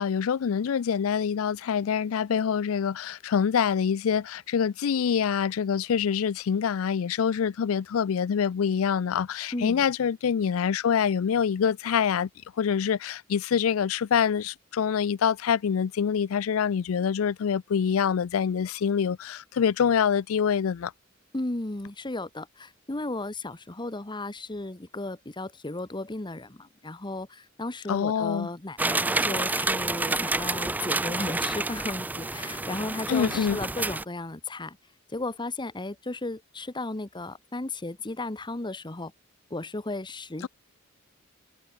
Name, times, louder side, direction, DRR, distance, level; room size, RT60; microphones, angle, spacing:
voice 1, 0.0-12.3 12.6-20.9 27.9-28.5 33.1-33.6 40.4-40.5, left 7 dB, 85° left, 0.4 m, -25 dB
voice 2, 9.5-9.8 21.3-34.8 35.1-39.1 39.5-40.5, left 2 dB, 20° left, 1.1 m, -35 dB
sound 1, 28.8-34.0, right 2 dB, 10° right, 0.4 m, -29 dB
head